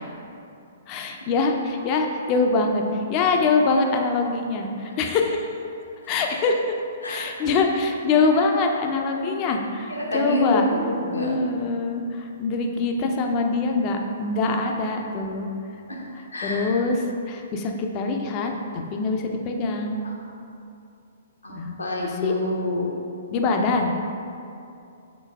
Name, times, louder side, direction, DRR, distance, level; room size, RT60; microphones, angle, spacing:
voice 1, 0.9-2.8 3.1-5.5 6.1-6.6 7.1-10.7 11.1-15.5 16.4-20.0 21.6-21.7 22.0-22.3 23.3-23.9, left 3 dB, 30° left, 3 dB, 0.4 m, -24 dB
voice 2, 9.9-11.3 15.9-16.0 16.3-16.7 21.4-22.9, equal, 75° left, -2 dB, 0.8 m, -27 dB
3.9 x 3.9 x 3.4 m, 2.6 s
figure-of-eight pair, 120°, 0 cm